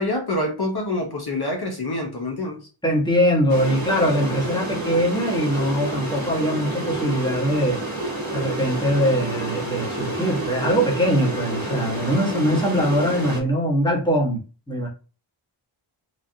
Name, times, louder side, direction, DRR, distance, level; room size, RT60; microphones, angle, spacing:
voice 1, 0.0-2.7, left 2 dB, 50° left, 0.8 m, -26 dB
voice 2, 2.8-7.8 8.3-14.4 14.7-14.9, equal, 10° left, 1.2 m, -22 dB
sound 1, 3.5-13.4, right 2 dB, 45° right, 1.2 m, -29 dB
3.2 x 2.4 x 2.6 m
wide cardioid pair, 80°, 49 cm